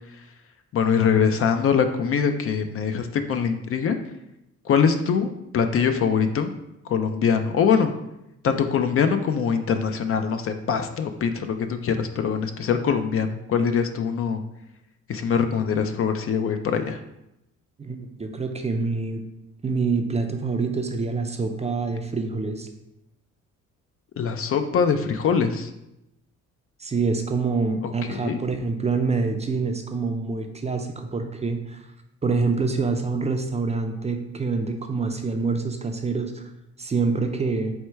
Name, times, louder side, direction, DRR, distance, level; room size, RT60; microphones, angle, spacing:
voice 1, 0.7-4.0 4.7-6.5 6.9-7.9 8.4-14.4 15.1-17.0 24.2-25.7 27.8-28.4, left 6 dB, 50° left, 8 dB, 0.4 m, -23 dB
voice 2, 17.8-19.2 19.6-22.7 26.8-31.8 32.2-36.4 36.8-37.7, right 4 dB, 20° right, 5 dB, 0.4 m, -26 dB
4.3 x 2.2 x 4.4 m, 0.87 s
cardioid pair, 90°, 30 cm